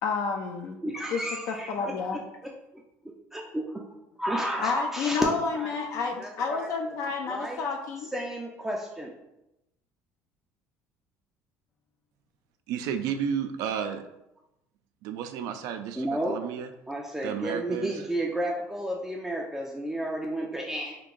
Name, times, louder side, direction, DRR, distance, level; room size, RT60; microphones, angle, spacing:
voice 1, 0.0-0.8 1.1-2.2 4.6-8.1, left 5 dB, 60° left, 3 dB, 0.4 m, -30 dB
voice 2, 0.8-2.5 3.0-3.8 4.2-5.9 6.2-6.7 7.3-7.6 8.1-9.1 16.0-16.4 16.9-21.0, right 1 dB, 5° right, -2 dB, 0.4 m, -32 dB
voice 3, 12.7-14.0 15.0-16.7 17.2-18.1, right 8 dB, 75° right, 8 dB, 0.4 m, -32 dB
2.9 x 2.5 x 3.7 m, 0.90 s
cardioid pair, 115°, 6 cm